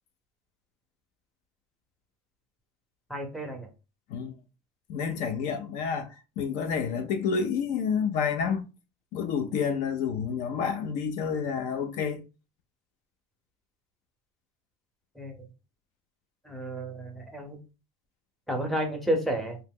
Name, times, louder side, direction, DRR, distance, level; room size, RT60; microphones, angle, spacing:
voice 1, 3.1-3.7 15.1-15.4 16.4-17.6 18.5-19.6, right 1 dB, ahead, 0.7 m, -31 dB
voice 2, 4.9-8.7 9.1-12.2, left 6 dB, 60° left, 0.4 m, -29 dB
2.8 x 2.0 x 3.6 m
cardioid pair, 140°, 14 cm